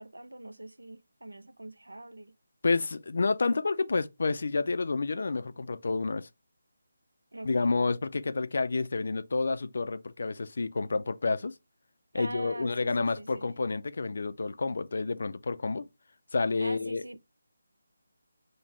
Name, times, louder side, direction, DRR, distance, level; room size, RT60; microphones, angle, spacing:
voice 1, 0.0-2.3 7.3-7.7 12.1-13.5 16.6-17.2, right 2 dB, 80° right, 0.4 m, -43 dB
voice 2, 2.6-6.3 7.4-11.5 12.1-15.9 16.3-17.2, left 3 dB, 55° left, 0.3 m, -29 dB
5.3 x 2.1 x 3.0 m
figure-of-eight pair, 155°, 0 cm